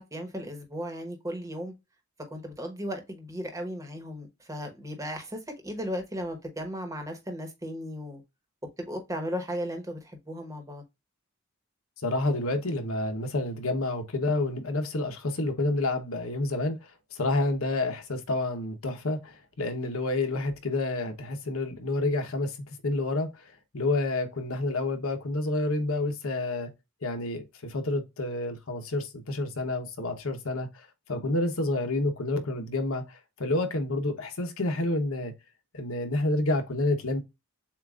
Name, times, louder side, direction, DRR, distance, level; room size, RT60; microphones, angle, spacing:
voice 1, 0.0-1.7 2.3-8.2 8.8-10.8, equal, 15° right, 1.2 m, -36 dB
voice 2, 12.0-26.7 27.0-35.3 35.7-37.2, left 2 dB, 85° left, 1.0 m, -29 dB
7.1 x 2.5 x 2.4 m
head